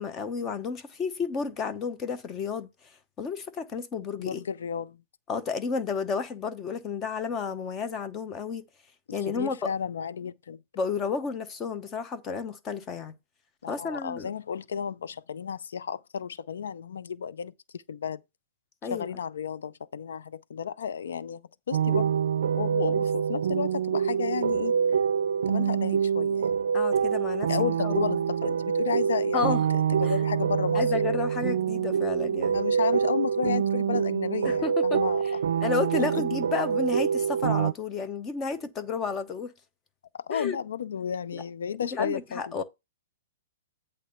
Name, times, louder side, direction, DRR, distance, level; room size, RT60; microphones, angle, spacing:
voice 1, 0.0-2.7 3.2-4.4 5.3-8.6 9.1-9.7 10.8-13.1 13.7-14.3 18.8-19.1 26.7-27.5 27.8-28.1 29.3-29.6 30.0-30.1 30.7-32.6 34.4-35.0 35.6-39.5 40.3-40.6 41.3-41.4 41.8-42.6, left 5 dB, 20° left, 0.9 m, -31 dB
voice 2, 4.2-5.0 9.1-10.6 13.6-18.2 18.9-21.4 21.7-22.2 22.6-24.7 25.5-26.6 27.5-29.6 29.9-30.8 32.5-35.4 36.0-36.4 40.1-42.6, left 7 dB, 80° left, 0.5 m, -33 dB
sound 1, 21.7-37.7, right 7 dB, 75° right, 0.4 m, -26 dB
8.4 x 3.4 x 6.5 m
hypercardioid pair, 150°, 0 cm